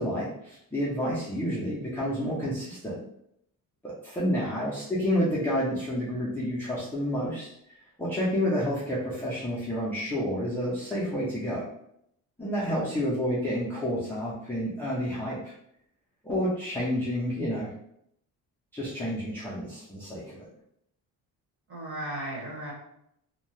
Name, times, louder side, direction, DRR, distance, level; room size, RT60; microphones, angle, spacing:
voice 1, 0.0-3.0 3.8-11.7 12.4-15.5 16.2-17.7 18.7-20.5, equal, 5° left, -8 dB, 0.4 m, -30 dB
voice 2, 21.7-22.7, right 1 dB, 35° right, -3 dB, 1.0 m, -36 dB
2.6 x 2.1 x 3.1 m, 0.76 s
cardioid pair, 145°, 38 cm